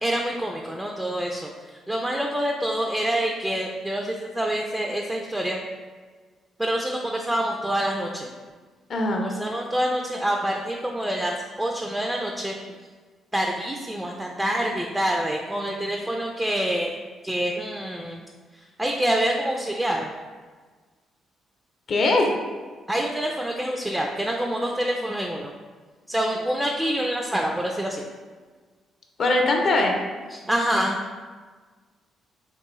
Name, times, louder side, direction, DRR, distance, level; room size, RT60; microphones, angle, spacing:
voice 1, 0.0-5.6 6.6-8.3 9.2-12.6 13.3-17.0 17.2-18.2 18.5-20.1 22.9-25.5 26.1-28.0 30.3-31.0, right 1 dB, 10° right, 1 dB, 0.3 m, -26 dB
voice 2, 8.9-9.3 21.9-22.3 29.2-29.9, left 2 dB, 55° left, 1 dB, 0.6 m, -21 dB
3.5 x 2.5 x 3.0 m, 1.4 s
cardioid pair, 90°, 0 cm